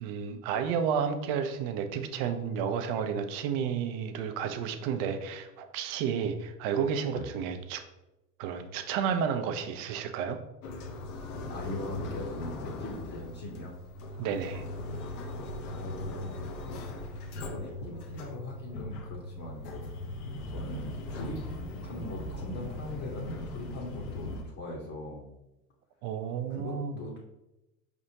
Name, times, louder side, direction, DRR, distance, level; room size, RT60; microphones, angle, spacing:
voice 1, 0.0-7.8 8.4-10.4 14.2-14.6 26.0-26.9, right 7 dB, 45° right, 8 dB, 0.6 m, -31 dB
sound 1, 10.6-24.4, left 1 dB, 65° left, 0.9 m, -39 dB
voice 2, 11.5-13.7 15.7-16.4 17.4-19.8 20.4-21.4 21.8-25.3 26.5-27.2, left 1 dB, 35° left, -3 dB, 1.1 m, -40 dB
5.0 x 3.5 x 2.8 m, 0.95 s
hypercardioid pair, 95°, 50 cm